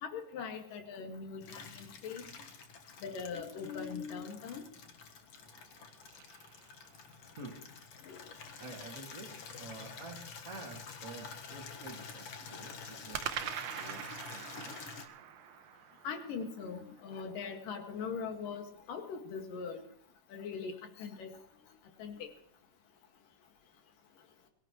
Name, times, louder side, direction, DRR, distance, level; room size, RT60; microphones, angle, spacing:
voice 1, 0.0-2.2 3.0-4.6 8.1-8.2 12.6-12.9 16.0-18.6 18.9-19.8 20.3-20.7 21.0-21.3 22.0-22.3, left 5 dB, 90° left, 4 dB, 3.5 m, -41 dB
Water tap faucet / Liquid, 1.4-15.1, left 5 dB, 50° left, 2.1 m, -49 dB
sound 1, 5.4-7.3 13.1-17.4, right 10 dB, 70° right, 1.7 m, -44 dB
voice 2, 7.4-7.8 8.6-13.2 13.8-14.8, right 3 dB, 30° right, -2 dB, 2.1 m, -49 dB
23.0 x 14.0 x 3.0 m, 0.67 s
omnidirectional pair, 3.7 m